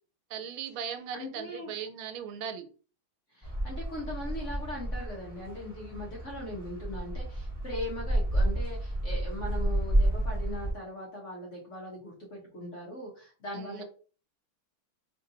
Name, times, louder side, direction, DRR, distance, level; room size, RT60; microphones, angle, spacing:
voice 1, 0.3-2.7 13.5-13.8, right 8 dB, 85° right, 8 dB, 1.4 m, -38 dB
voice 2, 1.1-1.7 3.3-13.8, left 1 dB, 50° left, -3 dB, 1.0 m, -40 dB
sound 1, 3.4-10.7, right 1 dB, 15° right, 1.2 m, -31 dB
3.5 x 2.6 x 2.7 m, 0.38 s
omnidirectional pair, 2.3 m